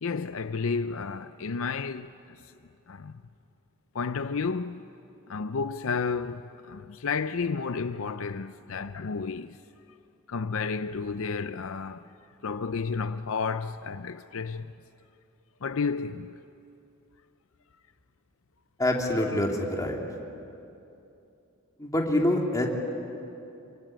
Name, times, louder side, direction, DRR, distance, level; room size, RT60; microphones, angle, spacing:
voice 1, 0.0-2.5 2.9-3.1 3.9-4.9 5.3-9.6 10.3-12.1 12.4-14.7 15.6-16.4, left 5 dB, 65° left, 0.5 m, -32 dB
voice 2, 18.8-20.0 21.8-22.7, left 1 dB, 15° left, 2.9 m, -25 dB
26.5 x 24.5 x 9.1 m
head